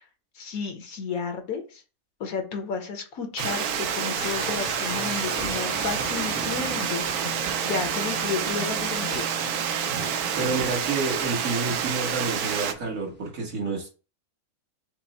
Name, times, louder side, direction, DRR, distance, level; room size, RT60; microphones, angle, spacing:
voice 1, 0.4-1.8 2.2-9.2, left 5 dB, 70° left, 4 dB, 1.4 m, -32 dB
Water, 3.4-12.7, right 8 dB, 85° right, 1.1 m, -28 dB
sound 1, 4.2-11.1, left 2 dB, 50° left, 0.9 m, -40 dB
sound 2, 5.3-13.3, right 2 dB, 10° right, 0.5 m, -45 dB
voice 2, 10.3-13.9, right 3 dB, 65° right, -1 dB, 1.8 m, -29 dB
5.9 x 2.1 x 4.0 m, 0.34 s
omnidirectional pair, 1.6 m